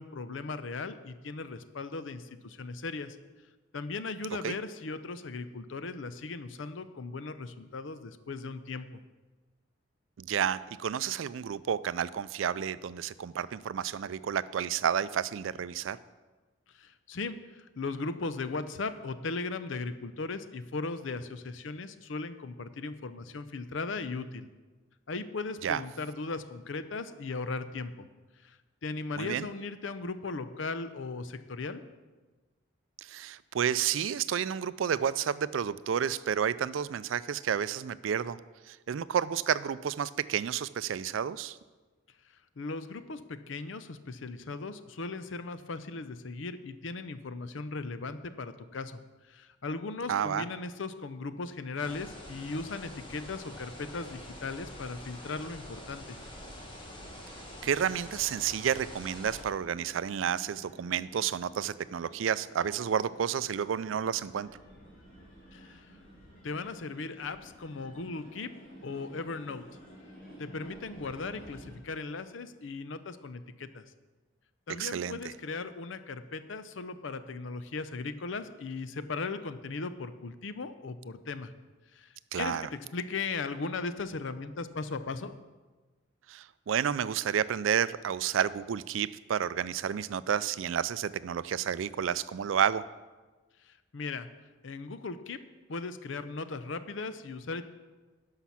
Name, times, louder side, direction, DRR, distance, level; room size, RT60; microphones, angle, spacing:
voice 1, 0.0-3.2 3.7-9.0 16.7-24.5 25.1-28.1 28.4-28.6 28.8-31.8 42.6-49.0 49.3-56.2 65.5-65.8 66.4-68.5 68.8-69.6 70.4-73.8 74.7-81.5 81.9-82.1 82.3-85.3 93.6-94.3 94.6-95.4 95.7-97.7, left 3 dB, 70° left, 12 dB, 0.6 m, -37 dB
voice 2, 10.2-16.0 25.6-25.8 29.2-29.5 33.0-38.4 38.7-41.6 50.1-50.5 57.6-64.5 74.8-75.3 82.3-82.7 86.3-92.8, right 8 dB, 75° right, 17 dB, 0.4 m, -30 dB
sound 1, 51.8-59.4, left 1 dB, 25° left, 1.3 m, -46 dB
sound 2, 59.3-71.8, equal, 45° left, 2.8 m, -53 dB
12.0 x 5.8 x 5.7 m, 1.3 s
head